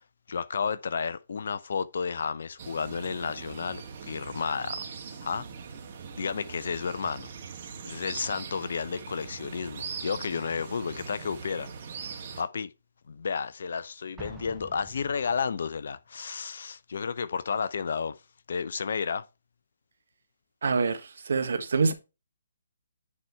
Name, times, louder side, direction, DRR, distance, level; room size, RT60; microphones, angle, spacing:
voice 1, 0.3-4.9 5.2-5.5 6.2-7.3 7.8-11.7 12.4-12.7 13.1-18.2 18.5-19.2, left 6 dB, 55° left, 0.7 m, -32 dB
sound 1, 2.6-12.4, right 6 dB, 40° right, 2.2 m, -41 dB
Explosion, 14.2-15.8, right 2 dB, 10° right, 1.5 m, -47 dB
voice 2, 20.6-21.9, right 4 dB, 60° right, 1.5 m, -26 dB
10.0 x 4.3 x 4.6 m
figure-of-eight pair, 140°, 0 cm